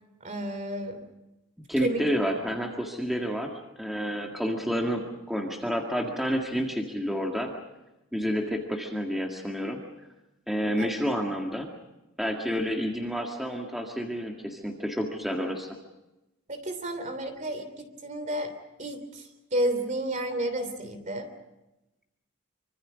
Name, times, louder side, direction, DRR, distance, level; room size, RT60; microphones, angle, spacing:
voice 1, 0.2-1.1 1.8-2.0 10.8-10.9 16.5-21.3, right 1 dB, 35° right, 8 dB, 3.1 m, -31 dB
voice 2, 1.7-3.5 3.8-7.5 8.1-9.8 10.5-11.7 12.2-15.7, equal, ahead, 1 dB, 1.8 m, -29 dB
25.5 x 25.0 x 5.2 m, 0.97 s
head